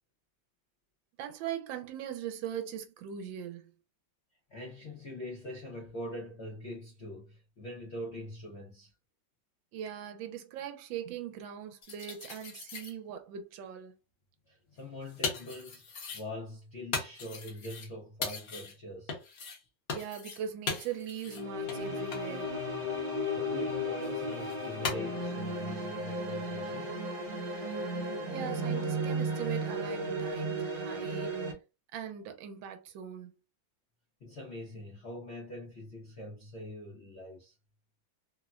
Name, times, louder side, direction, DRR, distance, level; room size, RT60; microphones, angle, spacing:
voice 1, 1.2-3.7 9.7-13.9 19.9-22.6 28.3-31.4 31.9-33.3, right 8 dB, 80° right, 1.3 m, -40 dB
voice 2, 4.5-8.9 14.5-19.2 23.0-27.0 34.2-37.5, left 1 dB, 75° left, 0.6 m, -43 dB
sound 1, 11.8-12.9 14.7-16.3 16.9-17.9 18.2-18.8 19.1-19.6 19.9-20.4 20.7-21.4 21.7-21.8 22.1-22.2 24.0-24.9, left 4 dB, 60° left, 1.1 m, -38 dB
sound 2, 21.3-31.5, right 1 dB, 60° right, 1.2 m, -34 dB
3.2 x 2.1 x 2.4 m
omnidirectional pair, 2.1 m